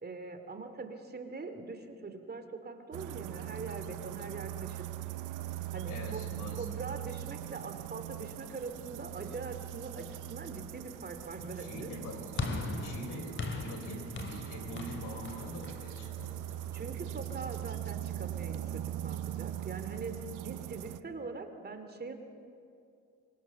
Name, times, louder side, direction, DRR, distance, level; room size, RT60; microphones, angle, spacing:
voice 1, 0.0-4.8 5.7-6.2 6.6-11.9 16.7-22.1, right 3 dB, 30° right, 7 dB, 2.5 m, -42 dB
sound 1, 2.9-21.0, right 13 dB, 90° right, 0.8 m, -41 dB
voice 2, 5.9-6.7 11.6-16.3, left 1 dB, 85° left, 4 dB, 5.1 m, -44 dB
sound 2, 12.4-16.8, left 3 dB, 40° left, 3.1 m, -39 dB
25.5 x 24.0 x 7.1 m, 2.5 s
cardioid pair, 90°, 30 cm